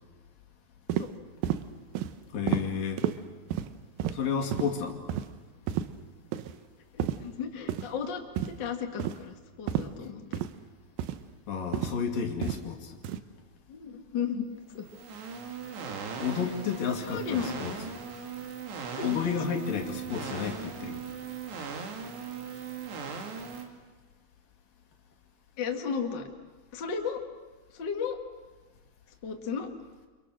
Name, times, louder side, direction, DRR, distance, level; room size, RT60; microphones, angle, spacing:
sound 1, 0.9-1.1 1.4-1.6 1.9-2.1 2.5-2.6 3.0-3.1 3.5-3.7 4.0-4.2 4.5-4.7 5.1-5.3 5.7-5.9 6.3-6.5 7.0-7.2 7.7-7.9 8.4-8.6 9.0-9.2 9.7-9.9 10.3-10.5 11.0-11.2 11.7-12.0 12.4-12.6 13.0-13.2, right 11 dB, 90° right, 2.0 m, -30 dB
voice 1, 2.3-3.1 4.1-5.0 11.5-13.0 16.1-17.7 19.0-21.0, left 6 dB, 50° left, 2 dB, 3.6 m, -31 dB
voice 2, 6.9-10.5 13.7-14.5 14.7-14.9 17.0-17.5 19.0-19.2 25.6-26.3 26.7-27.2 27.7-28.2 29.2-29.7, left 6 dB, 85° left, 3 dB, 1.0 m, -34 dB
sound 2, 14.7-23.6, right 6 dB, 65° right, 4.4 m, -39 dB
30.0 x 26.5 x 6.4 m, 1.3 s
omnidirectional pair, 5.5 m